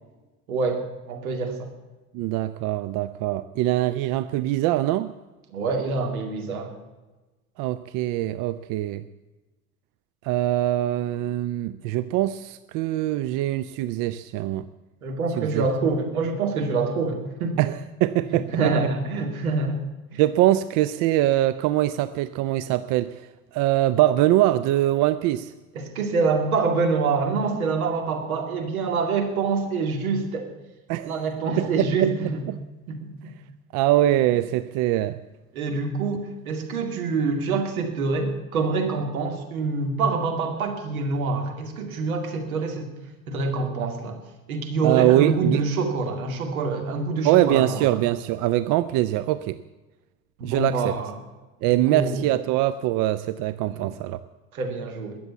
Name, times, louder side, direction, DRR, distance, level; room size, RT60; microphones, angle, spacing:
voice 1, 0.5-1.7 5.5-6.7 15.0-17.6 18.3-19.8 20.1-20.2 25.7-30.5 31.0-32.4 32.9-33.3 35.5-42.9 43.3-44.2 44.5-47.8 50.4-51.1 51.9-52.2 53.6-53.9 54.5-55.2, right 4 dB, 75° right, 4 dB, 2.4 m, -26 dB
voice 2, 2.1-5.1 7.6-9.0 10.2-14.7 15.4-15.6 17.6-18.7 20.2-23.3 23.5-25.5 30.9-31.1 31.6-32.1 32.5-32.6 33.7-35.2 44.8-45.6 47.2-49.6 50.4-50.9 51.6-54.2, right 14 dB, 50° right, 14 dB, 0.6 m, -23 dB
21.5 x 7.8 x 7.0 m, 1.2 s
figure-of-eight pair, 65°, 43 cm